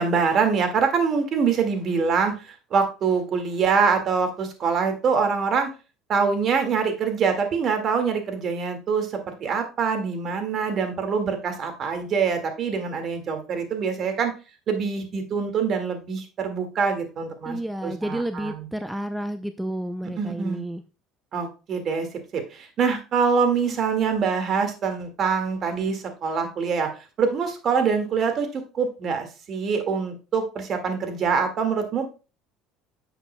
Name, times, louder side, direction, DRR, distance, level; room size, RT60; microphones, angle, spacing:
voice 1, 0.0-5.7 6.1-14.3 14.7-17.6 17.8-18.7 20.2-20.6 21.3-22.1 22.3-26.9 27.2-32.1, right 5 dB, 45° right, 6 dB, 1.9 m, -24 dB
voice 2, 17.5-20.8, right 1 dB, 5° right, 8 dB, 0.5 m, -31 dB
10.0 x 7.1 x 2.2 m, 0.32 s
supercardioid pair, 100°, 0 cm